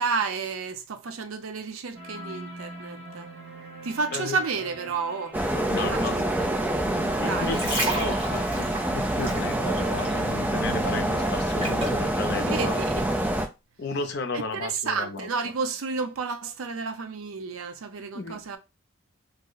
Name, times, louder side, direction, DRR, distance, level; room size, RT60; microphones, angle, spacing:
voice 1, 0.0-3.3 3.8-5.4 5.8-6.5 7.2-7.6 12.4-12.9 14.3-18.6, right 5 dB, 85° right, 0.5 m, -31 dB
sound 1, 1.9-11.4, right 2 dB, 50° right, 1.0 m, -42 dB
sound 2, 5.3-13.5, right 1 dB, 10° right, 0.3 m, -26 dB
voice 2, 5.5-6.2 7.2-12.8 13.8-15.3 18.1-18.4, left 3 dB, 50° left, 0.5 m, -33 dB
sound 3, 7.3-10.3 10.6-12.0 12.6-12.8, right 2 dB, 25° right, 0.9 m, -32 dB
2.7 x 2.1 x 3.8 m
head